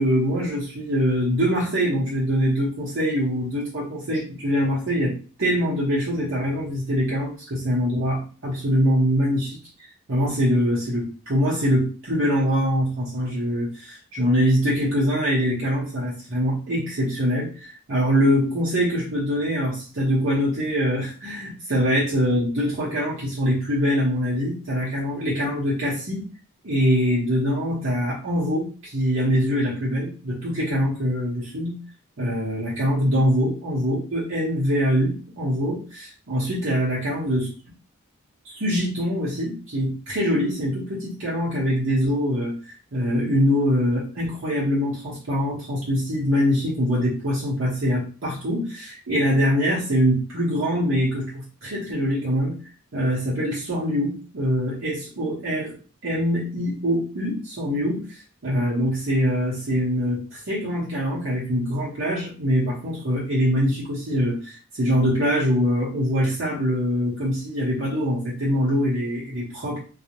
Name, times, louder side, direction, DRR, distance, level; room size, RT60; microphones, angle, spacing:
voice 1, 0.0-9.6 10.1-26.3 26.6-31.8 32.2-37.5 38.4-52.6 52.9-55.8 56.0-58.0 58.4-69.8, equal, 60° right, -7 dB, 0.8 m, -23 dB
2.4 x 2.0 x 2.8 m, 0.37 s
head